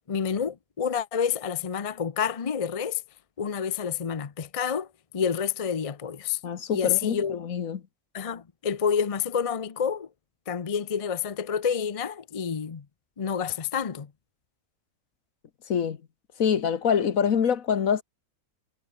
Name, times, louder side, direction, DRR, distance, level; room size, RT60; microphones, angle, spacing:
voice 1, 0.1-3.0 3.4-4.9 5.1-6.4 6.7-7.4 8.1-10.1 10.5-12.8 13.2-14.1, left 7 dB, 35° left, 0.6 m, -28 dB
voice 2, 6.4-7.8 15.7-16.0 16.4-18.0, left 7 dB, 65° left, 1.6 m, -25 dB
omnidirectional pair, 1.6 m